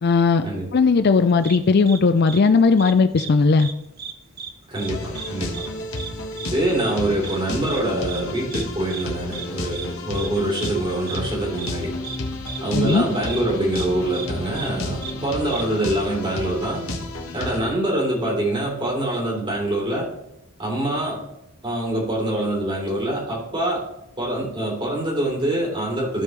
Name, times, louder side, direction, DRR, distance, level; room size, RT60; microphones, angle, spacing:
voice 1, 0.0-0.5 0.7-3.7 12.7-13.0, left 4 dB, 45° left, 10 dB, 0.4 m, -17 dB
sound 1, 1.4-1.6 1.8-2.0 2.3-2.4 2.8-3.3 3.6-3.7 4.0-4.5 4.7-4.9 5.1-5.3 5.5-5.7 6.0-6.1 6.4-6.5 6.8-6.9 7.2-7.4 7.7-7.8 8.1-8.2 8.5-8.6 8.9-9.0 9.3-9.4 9.7-9.9 10.1-10.3 10.5-10.7 11.1-11.2 11.6-11.7 12.0-12.2 12.5-12.6 12.9-13.0 13.3-13.4 13.7-13.9 14.1-14.3 14.5-14.7 15.0-15.1 15.5-15.6, right 7 dB, 45° right, 0.8 m, -34 dB
voice 2, 4.7-5.7 6.5-11.9 12.6-16.8 17.3-20.1 20.6-21.2 21.6-23.8 24.2-26.2, right 1 dB, 25° right, -4 dB, 3.6 m, -25 dB
sound 2, 4.8-17.6, left 2 dB, 65° left, 1.5 m, -31 dB
15.0 x 5.2 x 3.3 m, 0.84 s
head